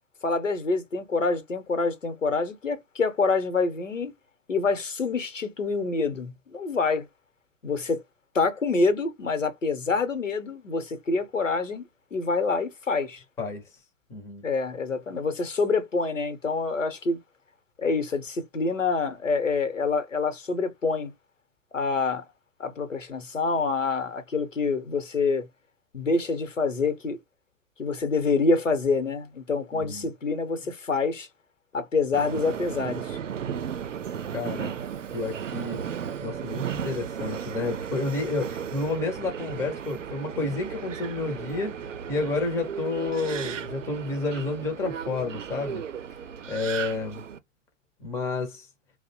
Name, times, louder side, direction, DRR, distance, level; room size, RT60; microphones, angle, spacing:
voice 1, 0.2-4.1 4.5-7.1 7.6-8.0 8.3-13.2 14.4-17.2 17.8-21.1 21.7-22.2 22.6-25.5 25.9-27.2 27.8-31.3 31.7-33.2, left 4 dB, 90° left, 0.8 m, -26 dB
voice 2, 14.1-14.4 29.7-30.1 34.3-34.7 35.1-35.8 36.2-41.8 42.1-45.8 46.5-47.2 48.0-48.7, left 3 dB, 10° left, 0.4 m, -30 dB
Subway metro underground, 32.1-47.4, right 8 dB, 80° right, 0.5 m, -35 dB
2.5 x 2.0 x 2.7 m
figure-of-eight pair, 105°, 37 cm